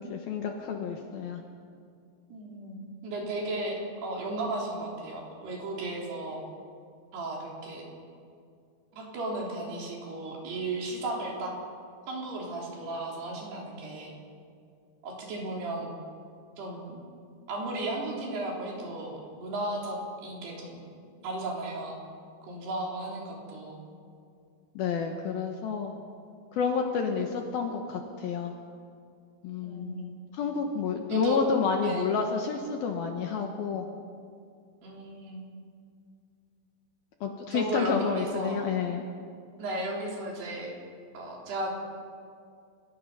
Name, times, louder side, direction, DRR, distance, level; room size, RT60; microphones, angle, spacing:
voice 1, 0.1-1.4 24.8-26.0 26.5-28.5 29.4-33.9 37.2-39.0, left 5 dB, 70° left, 3 dB, 2.6 m, -30 dB
voice 2, 2.3-2.8 3.0-6.4 7.1-7.9 8.9-11.5 12.1-14.1 15.0-15.9 16.6-17.0 17.5-20.8 21.2-22.0 22.5-23.8 29.6-30.1 31.1-31.4 31.8-32.1 34.8-35.4 37.5-38.6 39.6-40.7 41.1-41.7, right 2 dB, 60° right, -2 dB, 5.5 m, -35 dB
29.5 x 17.0 x 5.6 m, 2.3 s
omnidirectional pair, 5.3 m